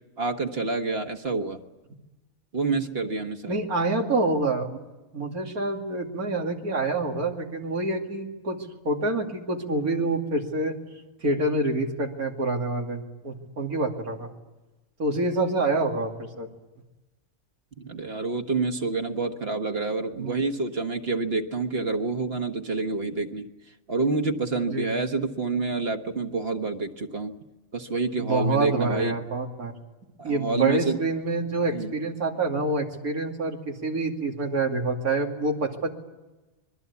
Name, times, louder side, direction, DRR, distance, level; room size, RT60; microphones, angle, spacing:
voice 1, 0.2-1.6 2.5-3.6 17.8-23.5 23.9-27.3 27.7-29.1 30.2-31.0 31.7-31.9, right 3 dB, 45° right, 6 dB, 1.6 m, -28 dB
voice 2, 3.5-4.8 5.1-10.8 11.2-14.3 15.0-16.5 20.2-20.4 24.7-24.9 28.2-29.7 30.2-35.9, right 2 dB, 90° right, 1 dB, 3.0 m, -27 dB
26.0 x 22.0 x 8.4 m, 1.1 s
omnidirectional pair, 1.5 m